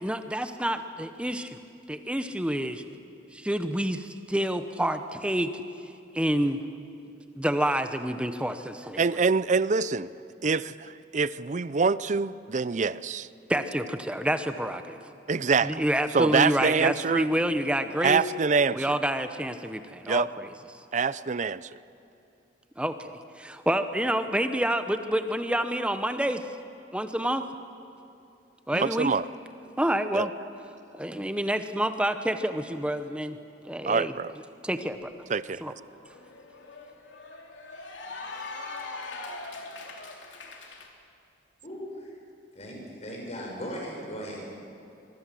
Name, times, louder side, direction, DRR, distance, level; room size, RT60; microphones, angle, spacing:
voice 1, 0.0-1.6 1.9-2.8 3.3-5.5 6.1-6.6 7.4-9.0 13.5-15.0 15.6-18.2 18.7-20.5 22.8-26.4 26.9-27.5 28.7-29.1 29.8-30.3 30.9-33.4 33.7-34.1 34.6-35.1 35.6-35.7, right 1 dB, 5° right, 0.8 m, -28 dB
voice 2, 9.0-10.1 10.4-13.3 15.3-15.9 16.1-17.3 18.0-18.9 20.1-20.3 20.9-21.8 28.7-29.3 30.1-30.3 33.8-34.3 35.3-35.8, right 4 dB, 40° right, 0.5 m, -25 dB
Cheering / Applause, 35.0-35.1 35.4-40.9, left 3 dB, 85° left, 3.1 m, -41 dB
voice 3, 41.6-42.1 42.5-44.4, equal, 35° left, 6.7 m, -38 dB
25.0 x 22.5 x 7.7 m
head